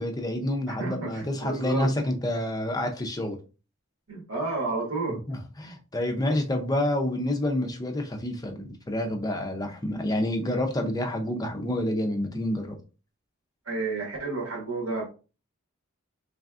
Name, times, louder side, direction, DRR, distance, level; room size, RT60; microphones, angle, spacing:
voice 1, 0.0-3.4 5.1-12.8, left 1 dB, 20° left, 0.5 m, -28 dB
voice 2, 0.8-1.9 4.1-5.2 13.7-15.1, right 3 dB, 90° right, 1.5 m, -31 dB
3.7 x 3.3 x 2.4 m
head